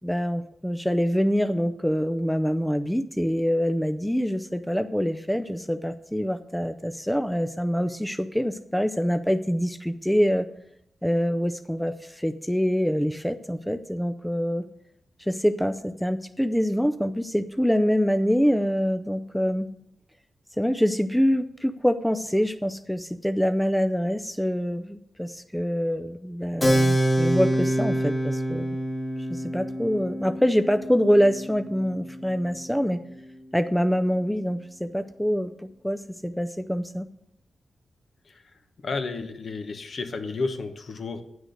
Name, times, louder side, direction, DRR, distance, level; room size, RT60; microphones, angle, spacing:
voice 1, 0.0-10.5 11.0-14.6 15.2-19.7 20.6-28.7 29.3-33.0 33.5-37.1, equal, ahead, 9 dB, 0.4 m, -25 dB
Keyboard (musical), 26.6-32.7, right 1 dB, 25° left, 1.6 m, -26 dB
voice 2, 38.8-41.2, left 3 dB, 60° left, 7 dB, 1.1 m, -31 dB
9.4 x 6.4 x 6.5 m, 0.77 s
wide cardioid pair, 100°, 0 cm